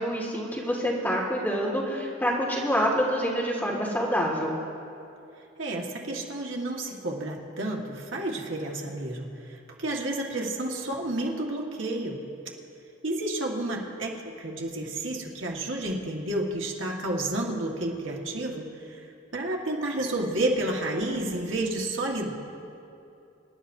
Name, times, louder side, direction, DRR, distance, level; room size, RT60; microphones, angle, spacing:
voice 1, 0.0-4.5, equal, 10° left, -5 dB, 1.7 m, -27 dB
voice 2, 5.6-12.2 13.0-19.0 19.3-22.3, right 1 dB, 70° right, -1 dB, 1.7 m, -31 dB
26.5 x 11.0 x 2.7 m, 2.7 s
head